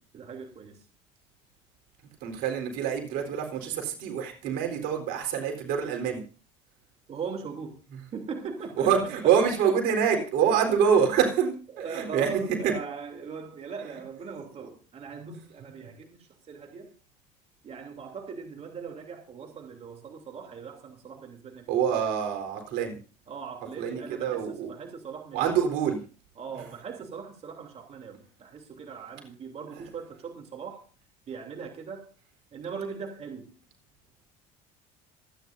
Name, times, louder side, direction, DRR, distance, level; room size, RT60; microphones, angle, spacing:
voice 1, 0.1-0.8 7.1-7.8 8.1-8.9 10.7-10.8 11.7-16.9 17.6-21.8 23.3-25.7 26.4-30.8 31.3-32.0 32.5-33.5, right 5 dB, 40° right, 3 dB, 3.1 m, -39 dB
voice 2, 2.2-6.2 8.8-12.6 21.7-23.0 23.8-24.7 25.3-26.0, right 7 dB, 70° right, 4 dB, 4.0 m, -26 dB
26.5 x 9.9 x 2.7 m, 0.37 s
supercardioid pair, 90°, 16 cm